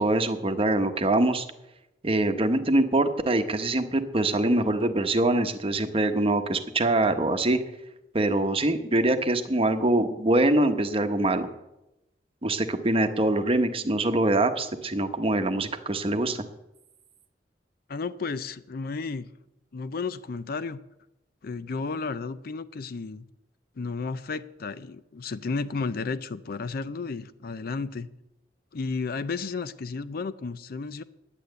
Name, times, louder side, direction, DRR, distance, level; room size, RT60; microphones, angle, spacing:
voice 1, 0.0-1.5 2.0-7.6 8.1-11.5 12.4-16.4, right 2 dB, 35° right, 0.9 m, -24 dB
voice 2, 17.9-19.3 19.7-20.8 21.4-23.3 23.8-28.1 28.7-31.0, left 4 dB, 55° left, 0.5 m, -33 dB
10.0 x 8.8 x 8.0 m
head